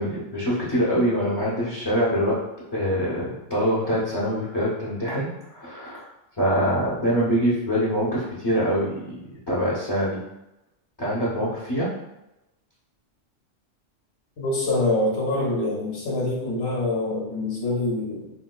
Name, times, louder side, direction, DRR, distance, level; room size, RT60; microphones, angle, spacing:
voice 1, 0.0-2.4 2.7-6.1 6.4-9.2 9.5-10.2 11.0-11.9, equal, 30° left, -7 dB, 0.5 m, -24 dB
voice 2, 14.4-18.3, left 2 dB, 65° left, -4 dB, 1.2 m, -25 dB
3.7 x 2.6 x 2.2 m, 0.91 s
omnidirectional pair, 1.3 m